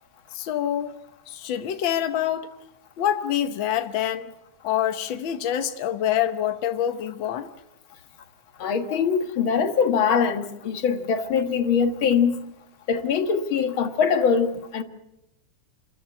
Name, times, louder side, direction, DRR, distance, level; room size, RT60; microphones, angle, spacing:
voice 1, 0.3-1.0 1.3-2.5 3.0-4.3 4.6-7.5 8.9-9.0, left 10 dB, 75° left, 1.1 m, -26 dB
voice 2, 8.6-12.4 12.9-14.5 14.7-14.8, left 6 dB, 50° left, 1.8 m, -22 dB
28.5 x 14.0 x 8.5 m
omnidirectional pair, 3.6 m